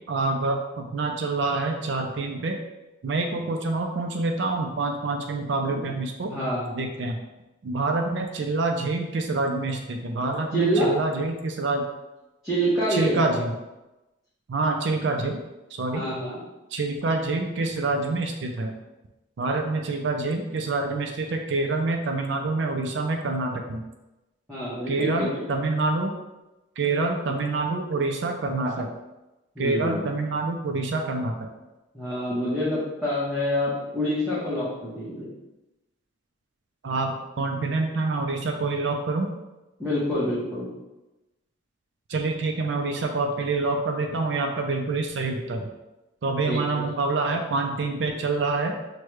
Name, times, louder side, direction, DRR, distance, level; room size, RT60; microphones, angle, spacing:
voice 1, 0.1-2.6 3.0-6.3 6.7-7.2 7.6-11.8 12.9-13.6 14.5-15.4 15.7-16.0 16.7-18.8 19.4-23.8 24.9-26.1 26.8-28.9 29.6-31.5 36.8-39.3 42.1-45.7 46.2-48.8, right 3 dB, 60° right, 3 dB, 0.4 m, -26 dB
voice 2, 6.3-6.9 10.5-10.9 12.4-13.1 15.9-16.4 24.5-25.4 29.6-30.0 31.9-35.3 39.8-40.7 46.5-46.8, equal, ahead, -11 dB, 0.8 m, -27 dB
6.2 x 2.2 x 3.1 m, 1.0 s
head